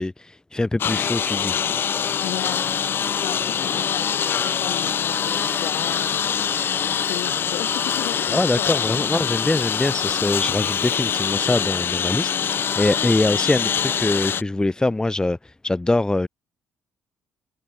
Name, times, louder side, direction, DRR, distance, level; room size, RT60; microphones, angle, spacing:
voice 1, 0.0-1.5 8.3-16.3, left 2 dB, 15° left, 2.6 m, -23 dB
Engine, 0.8-14.4, left 8 dB, 50° left, 0.8 m, -24 dB
voice 2, 2.2-6.3 6.9-9.1 9.6-9.7, left 15 dB, 70° left, 4.6 m, -35 dB
hypercardioid pair, 55°, 5 cm